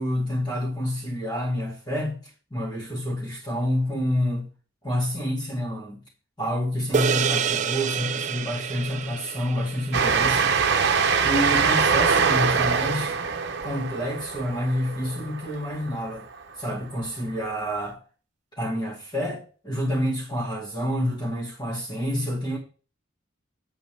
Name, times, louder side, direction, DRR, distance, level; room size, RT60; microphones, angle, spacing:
voice 1, 0.0-2.2 2.5-4.5 4.8-6.0 6.4-10.5 11.2-13.1 13.6-16.2 16.6-18.0 18.6-22.6, equal, 25° left, 2.4 m, -28 dB
sound 1, 6.9-11.5, right 7 dB, 35° right, 0.4 m, -29 dB
Train, 9.9-16.1, right 5 dB, 55° right, 0.9 m, -23 dB
8.3 x 7.9 x 3.4 m
head